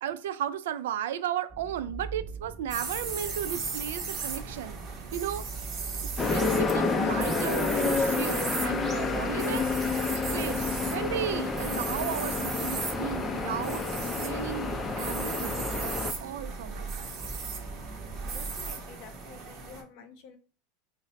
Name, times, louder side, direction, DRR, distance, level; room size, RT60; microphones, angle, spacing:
voice 1, 0.0-4.8 5.1-5.5 6.0-9.7 10.3-13.8 14.2-14.7 15.0-15.9 16.2-17.1, right 10 dB, 85° right, 0.3 m, -34 dB
sound 1, 1.5-18.7, right 4 dB, 15° right, 1.4 m, -42 dB
sound 2, 2.7-19.8, right 5 dB, 40° right, 0.9 m, -38 dB
sound 3, 6.2-16.1, left 4 dB, 15° left, 0.5 m, -29 dB
voice 2, 18.2-20.4, left 6 dB, 60° left, 0.7 m, -49 dB
3.9 x 2.1 x 4.0 m
supercardioid pair, 135°, 0 cm